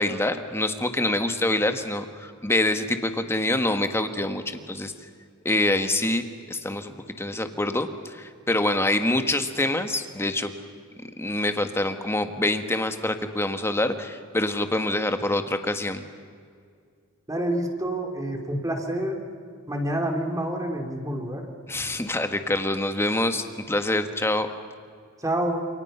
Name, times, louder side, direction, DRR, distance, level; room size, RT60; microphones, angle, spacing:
voice 1, 0.0-4.9 5.4-10.5 11.2-16.0 21.7-24.5, left 1 dB, 10° left, 7 dB, 1.5 m, -26 dB
voice 2, 17.3-19.2 19.7-21.5 25.2-25.7, right 1 dB, 15° right, 3 dB, 3.1 m, -28 dB
29.0 x 28.0 x 5.7 m, 2.2 s
head